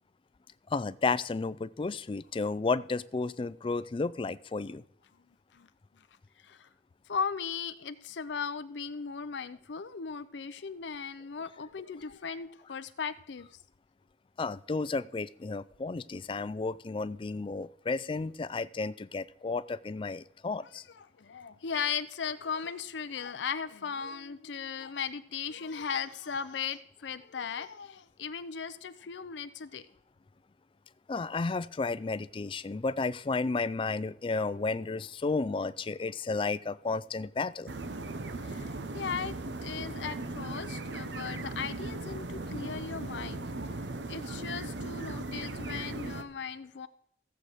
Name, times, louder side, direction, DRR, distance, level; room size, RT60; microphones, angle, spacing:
voice 1, 0.7-4.8 14.4-20.8 31.1-37.7, left 3 dB, 30° left, 17 dB, 0.4 m, -32 dB
voice 2, 7.1-13.5 20.6-29.8 38.4-39.4 39.6-43.5 44.1-46.9, left 6 dB, 85° left, 11 dB, 0.6 m, -37 dB
sound 1, 37.7-46.2, right 2 dB, 85° right, 0.9 m, -38 dB
15.5 x 7.8 x 5.0 m, 0.72 s
head